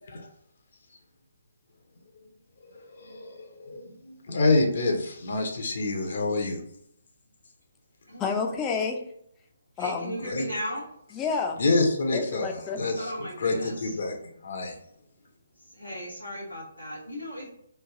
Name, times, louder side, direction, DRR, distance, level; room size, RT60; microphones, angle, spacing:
voice 1, 2.7-6.6 10.2-10.5 11.6-14.8, left 2 dB, 50° left, 2 dB, 0.7 m, -27 dB
voice 2, 8.2-9.0 9.8-10.2 11.1-11.6 12.1-12.8, left 5 dB, 15° left, 2 dB, 0.4 m, -29 dB
voice 3, 9.8-10.8 13.0-13.7 15.7-17.6, equal, 85° left, -6 dB, 0.9 m, -36 dB
3.2 x 2.4 x 3.6 m, 0.73 s
figure-of-eight pair, 135°, 0 cm